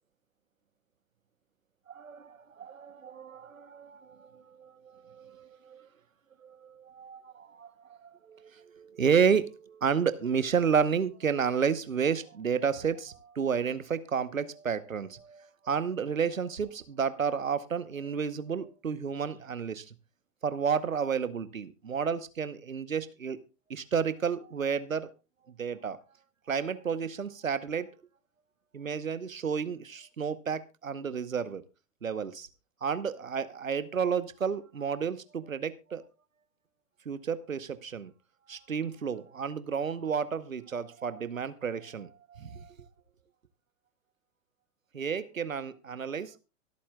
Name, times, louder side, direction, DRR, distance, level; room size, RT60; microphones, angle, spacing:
voice 1, 1.9-5.9 6.4-19.9 20.4-23.4 23.7-25.1 25.6-26.0 26.5-27.9 28.7-31.6 32.0-32.5 32.8-36.0 37.1-38.1 38.5-42.7 44.9-46.4, right 6 dB, 90° right, 15 dB, 1.0 m, -31 dB
24.0 x 8.6 x 2.3 m, 0.29 s
figure-of-eight pair, 100°, 39 cm